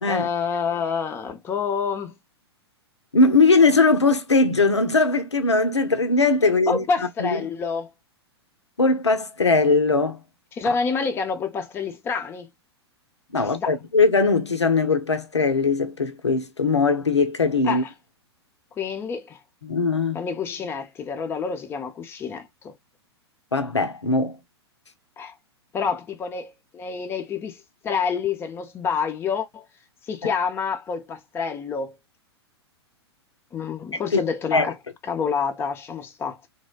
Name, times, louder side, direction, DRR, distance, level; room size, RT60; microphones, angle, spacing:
voice 1, 0.1-2.2 6.7-7.9 10.5-12.5 13.4-13.7 17.6-17.9 18.8-19.4 20.1-22.7 25.2-25.3 25.7-29.6 30.1-31.9 33.5-34.7 35.1-36.4, left 5 dB, 15° left, 0.5 m, -28 dB
voice 2, 3.1-6.8 7.2-7.4 8.8-10.2 10.7-10.8 13.3-17.8 19.6-20.2 23.5-24.4 34.1-34.2 34.5-34.7, left 3 dB, 85° left, 0.5 m, -20 dB
2.6 x 2.1 x 2.2 m
figure-of-eight pair, 100°, 14 cm